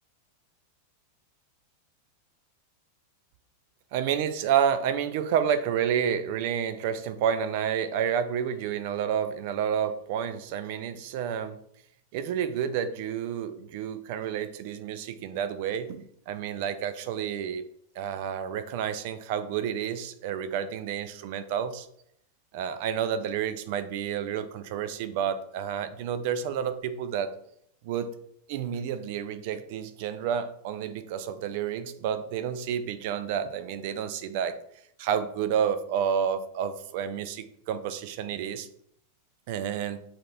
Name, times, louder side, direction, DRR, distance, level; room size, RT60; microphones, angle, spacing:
voice 1, 3.9-11.6 12.1-17.7 18.0-21.9 22.5-27.3 27.8-28.1 28.5-34.6 35.0-38.7 39.5-40.0, right 8 dB, 50° right, 11 dB, 0.4 m, -30 dB
7.4 x 2.9 x 2.2 m, 0.70 s
figure-of-eight pair, 90°, 0 cm